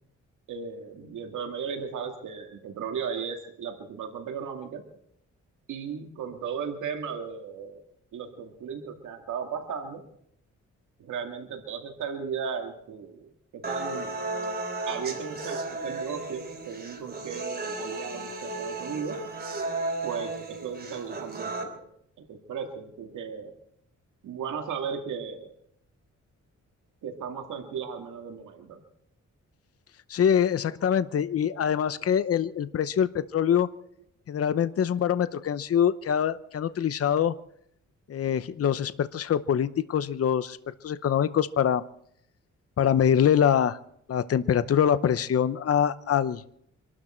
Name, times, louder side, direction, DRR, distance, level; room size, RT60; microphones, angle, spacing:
voice 1, 0.5-4.8 5.7-7.8 8.1-10.0 11.0-14.2 14.9-19.2 20.0-21.9 22.3-23.5 24.2-25.5 27.0-28.8 30.8-31.1 31.5-32.0, right 6 dB, 90° right, 4 dB, 2.3 m, -36 dB
sound 1, 13.6-21.6, right 2 dB, 35° right, 3.4 m, -34 dB
voice 2, 30.1-33.7 34.3-37.3 38.1-40.6 40.8-41.8 42.8-43.8 44.1-46.4, left 8 dB, 50° left, 14 dB, 0.8 m, -24 dB
25.5 x 12.5 x 4.5 m, 0.72 s
cardioid pair, 95°, 29 cm